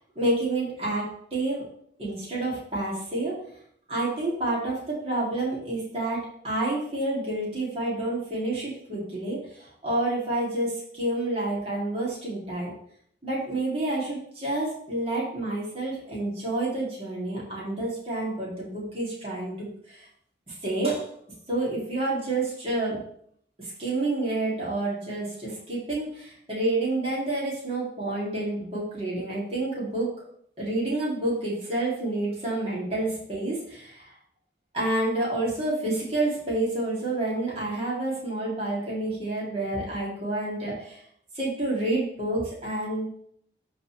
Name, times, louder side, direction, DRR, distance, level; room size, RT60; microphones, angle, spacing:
voice 1, 0.0-1.7 2.0-3.4 3.9-12.7 13.2-20.0 20.5-21.0 21.5-23.0 23.6-30.1 30.6-34.1 34.7-41.0 41.3-43.1, right 2 dB, 35° right, -6 dB, 2.6 m, -29 dB
12.5 x 4.2 x 3.3 m, 0.66 s
head